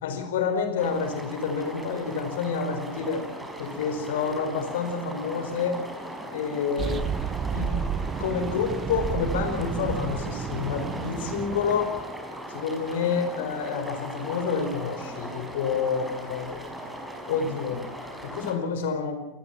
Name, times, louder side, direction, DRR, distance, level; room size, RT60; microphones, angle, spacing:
voice 1, 0.0-3.3 3.6-5.8 6.3-7.0 7.5-12.0 12.5-16.5 17.3-17.8 18.2-19.2, left 6 dB, 55° left, 8 dB, 4.6 m, -28 dB
sound 1, 0.8-18.6, equal, 5° right, 5.7 m, -39 dB
sound 2, 6.8-12.1, right 7 dB, 20° right, 0.9 m, -31 dB
28.0 x 20.0 x 5.7 m, 1.1 s
figure-of-eight pair, 90°, 0 cm